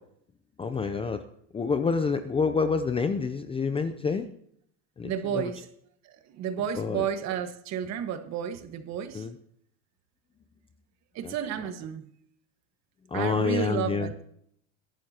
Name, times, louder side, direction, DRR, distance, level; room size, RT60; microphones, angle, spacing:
voice 1, 0.6-1.2 1.5-4.3 5.0-5.5 6.7-7.1 9.1-9.3 11.2-11.3 13.1-14.1, left 5 dB, 15° left, 0.6 m, -28 dB
voice 2, 5.0-5.7 6.0-9.3 11.1-12.1 13.1-14.1, right 9 dB, 40° right, 1.7 m, -32 dB
22.0 x 11.5 x 2.9 m
supercardioid pair, 130°, 40 cm